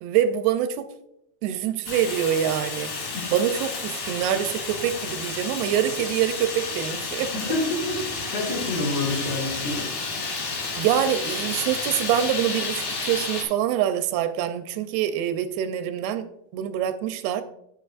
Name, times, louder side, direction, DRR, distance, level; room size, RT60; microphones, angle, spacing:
voice 1, 0.0-0.9 1.4-2.9 3.3-7.3 10.8-16.3 16.5-17.4, right 10 dB, 85° right, 10 dB, 2.6 m, -25 dB
Fire, 1.9-13.4, left 4 dB, 90° left, 4.7 m, -31 dB
voice 2, 7.3-8.0 8.3-9.9, left 2 dB, 70° left, -3 dB, 4.2 m, -27 dB
9.4 x 8.5 x 2.5 m, 0.79 s
omnidirectional pair, 4.5 m